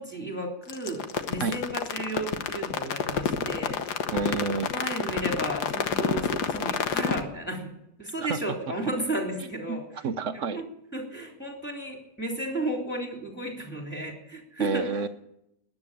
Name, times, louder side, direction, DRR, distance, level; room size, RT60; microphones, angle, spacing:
voice 1, 0.0-3.8 4.7-7.7 8.0-10.1 10.3-10.7 10.9-15.0, right 1 dB, 5° left, 1 dB, 3.4 m, -33 dB
sound 1, 0.7-7.2, left 7 dB, 85° left, 1.7 m, -28 dB
voice 2, 4.1-4.7 8.2-8.4 9.7-10.6 14.6-15.1, right 5 dB, 60° right, 11 dB, 1.0 m, -29 dB
13.5 x 10.0 x 10.0 m, 0.83 s
omnidirectional pair, 1.7 m